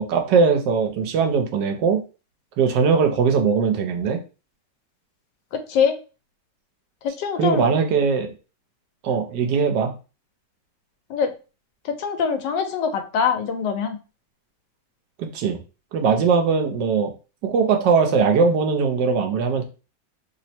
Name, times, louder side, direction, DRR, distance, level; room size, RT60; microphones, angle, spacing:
voice 1, 0.0-2.0 2.6-4.2 7.4-8.3 9.0-9.9 15.2-15.6 15.9-17.1 17.4-19.6, right 5 dB, 85° right, 5 dB, 1.3 m, -20 dB
voice 2, 5.5-5.9 7.0-7.7 11.1-11.3 11.8-14.0, left 6 dB, 85° left, 7 dB, 1.3 m, -23 dB
3.3 x 2.1 x 4.2 m, 0.33 s
omnidirectional pair, 1.9 m